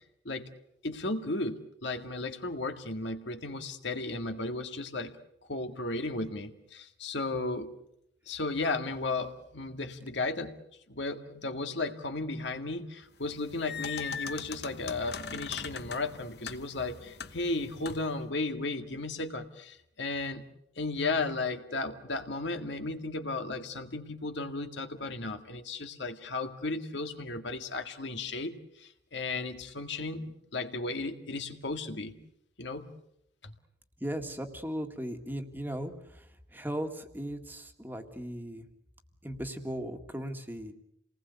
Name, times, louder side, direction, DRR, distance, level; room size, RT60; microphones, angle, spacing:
voice 1, 0.8-5.1 5.5-7.7 8.3-10.5 10.9-20.4 20.8-32.1 32.6-32.9 33.4-33.5, left 3 dB, 75° left, 7 dB, 2.0 m, -35 dB
sound 1, 13.2-18.2, left 6 dB, 60° left, 1.1 m, -41 dB
voice 2, 34.0-36.2 36.5-38.7 39.2-40.7, equal, 10° right, 6 dB, 1.9 m, -37 dB
28.5 x 19.5 x 8.2 m, 0.76 s
head